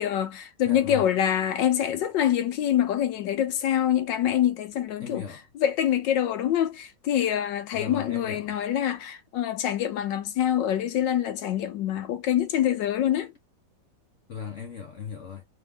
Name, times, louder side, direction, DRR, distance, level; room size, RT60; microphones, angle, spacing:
voice 1, 0.0-5.2 5.5-13.3, left 10 dB, 75° left, 1.3 m, -25 dB
voice 2, 0.6-1.1 5.0-5.4 7.7-8.6 14.3-15.4, left 6 dB, 60° left, 0.8 m, -37 dB
3.5 x 2.4 x 3.4 m
omnidirectional pair, 2.1 m